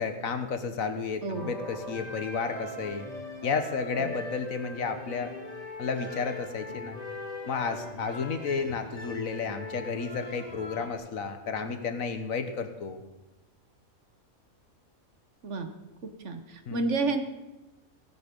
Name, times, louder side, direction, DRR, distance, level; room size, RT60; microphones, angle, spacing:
voice 1, 0.0-3.1 3.4-5.3 5.8-7.0 7.5-13.0 16.7-16.8, left 5 dB, 70° left, 9 dB, 1.6 m, -32 dB
voice 2, 1.2-1.5 4.0-4.1 15.4-15.7 16.0-17.2, right 3 dB, 55° right, 7 dB, 1.4 m, -30 dB
sound 1, 1.3-10.9, left 1 dB, 25° left, 2.1 m, -41 dB
16.5 x 10.0 x 5.3 m, 1.1 s
omnidirectional pair, 1.5 m